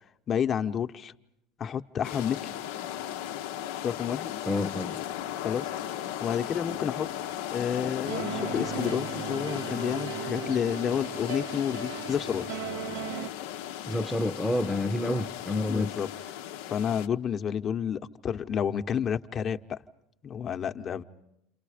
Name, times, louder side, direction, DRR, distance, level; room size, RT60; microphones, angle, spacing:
voice 1, 0.3-1.1 1.6-2.6 3.8-4.3 5.4-5.7 6.2-7.1 7.5-12.4 15.1-15.2 15.7-16.1 16.6-19.8 20.2-21.0, left 8 dB, 40° left, 1.1 m, -30 dB
sound 1, 2.0-17.1, left 11 dB, 80° left, 0.8 m, -36 dB
voice 2, 4.5-5.0 13.9-16.0, left 1 dB, ahead, 0.9 m, -29 dB
sound 2, 8.0-13.3, right 9 dB, 85° right, 1.1 m, -37 dB
30.0 x 27.0 x 5.1 m
supercardioid pair, 95°, 0 cm